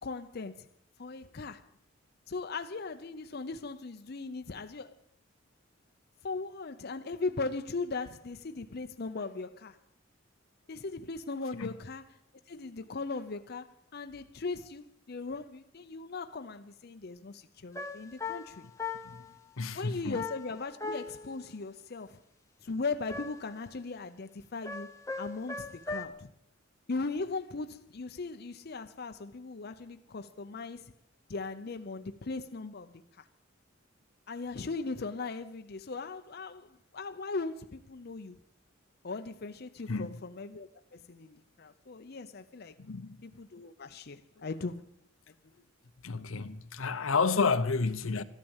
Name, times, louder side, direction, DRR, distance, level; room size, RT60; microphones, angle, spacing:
voice 1, 0.0-0.7 1.0-1.6 2.3-5.0 6.2-9.8 10.7-12.1 12.5-18.6 19.7-22.2 22.6-26.3 26.9-30.9 31.3-33.3 34.3-38.4 39.0-42.8 43.2-44.9, left 3 dB, 50° left, 0.6 m, -38 dB
sound 1, 17.7-19.3 20.1-21.4 23.1-23.6 24.7-26.1, left 4 dB, 15° left, 0.9 m, -39 dB
voice 2, 19.6-20.2 39.9-40.2 42.8-43.2 46.0-48.2, left 4 dB, 80° left, 0.8 m, -30 dB
13.5 x 12.0 x 7.2 m
head